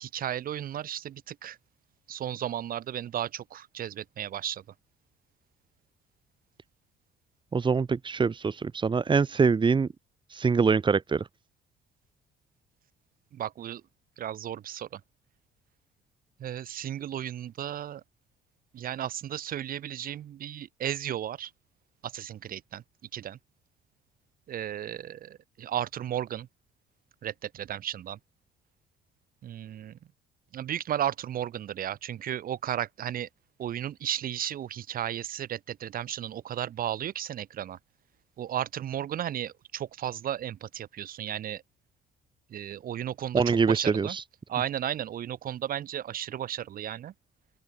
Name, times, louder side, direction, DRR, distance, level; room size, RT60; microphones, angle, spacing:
voice 1, 0.0-1.6 2.1-4.6 13.3-13.8 14.2-15.0 16.4-18.0 18.7-21.5 22.0-22.8 23.1-23.4 24.5-26.5 27.2-28.2 29.4-30.0 30.5-33.3 33.6-37.8 38.4-41.6 42.5-44.2 44.5-47.1, right 11 dB, 60° right, 5.3 m, -34 dB
voice 2, 7.5-9.9 10.3-11.3 43.3-44.2, right 5 dB, 30° right, 3.3 m, -24 dB
open air
cardioid pair, 110°, 17 cm